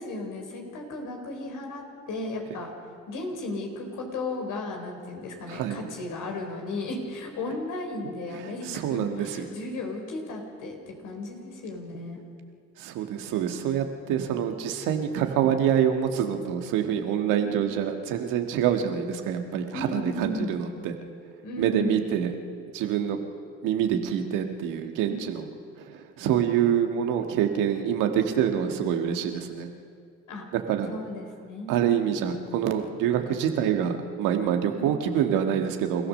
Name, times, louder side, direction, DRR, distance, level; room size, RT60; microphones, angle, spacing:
voice 1, 0.0-2.7 3.1-12.2 17.4-17.7 19.7-20.6 21.4-22.0 25.1-25.2 30.3-30.4 30.8-31.8 32.3-32.5 34.7-34.9, left 2 dB, 75° left, 2 dB, 4.4 m, -35 dB
voice 2, 5.5-5.8 8.7-9.3 12.8-20.9 21.6-22.3 22.7-23.2 23.6-25.4 25.8-29.7 30.5-30.9 31.7-36.1, right 9 dB, 85° right, 5 dB, 1.7 m, -26 dB
28.0 x 16.0 x 6.6 m, 2.2 s
hypercardioid pair, 50°, 31 cm